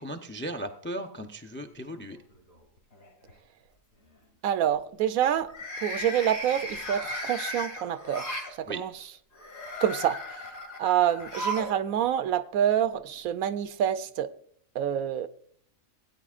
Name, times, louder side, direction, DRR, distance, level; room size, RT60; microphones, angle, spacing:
voice 1, 0.0-2.2 8.6-8.8, right 1 dB, 20° left, 6 dB, 0.3 m, -36 dB
sound 1, 1.9-2.5 2.9-3.3 5.4-8.5 9.3-11.8 12.0-12.1 13.3-13.4, equal, 70° left, 2.6 m, -36 dB
voice 2, 4.4-5.5 5.8-8.3 8.7-8.9 9.8-10.2 10.8-14.3 14.8-15.3, right 10 dB, 80° right, 12 dB, 1.1 m, -27 dB
17.5 x 9.4 x 2.4 m, 0.63 s
omnidirectional pair, 1.4 m